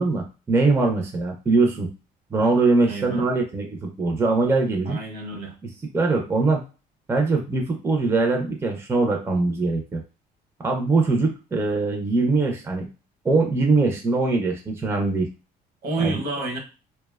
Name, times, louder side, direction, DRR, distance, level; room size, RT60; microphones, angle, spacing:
voice 1, 0.0-1.9 2.3-5.0 5.9-6.6 7.1-10.0 10.6-12.9 13.2-15.3 16.0-16.2, right 3 dB, 15° right, 2 dB, 0.4 m, -22 dB
voice 2, 2.8-3.3 4.9-5.6 15.8-16.6, right 3 dB, 65° right, 1 dB, 0.9 m, -29 dB
2.7 x 2.1 x 2.3 m, 0.33 s
cardioid pair, 110°, 17 cm